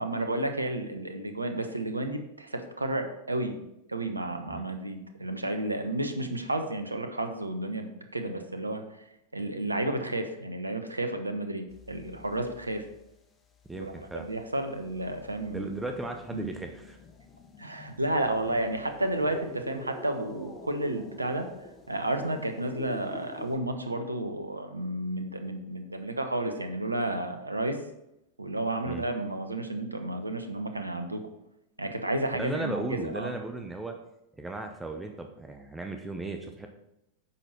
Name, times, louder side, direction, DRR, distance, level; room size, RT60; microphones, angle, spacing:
voice 1, 0.0-3.6 3.9-8.8 9.3-12.8 13.7-15.7 16.3-16.5 17.6-21.5 21.9-27.8 28.4-31.2 31.8-33.4, right 1 dB, 80° right, 7 dB, 1.1 m, -32 dB
sound 1, 11.7-13.2 13.5-23.6, left 3 dB, 20° left, 1.4 m, -48 dB
voice 2, 13.7-14.3 15.5-17.0 28.8-29.0 32.4-33.9 34.4-36.7, right 2 dB, 10° right, 4 dB, 0.9 m, -36 dB
9.8 x 6.6 x 4.3 m, 0.84 s
figure-of-eight pair, 90°, 0 cm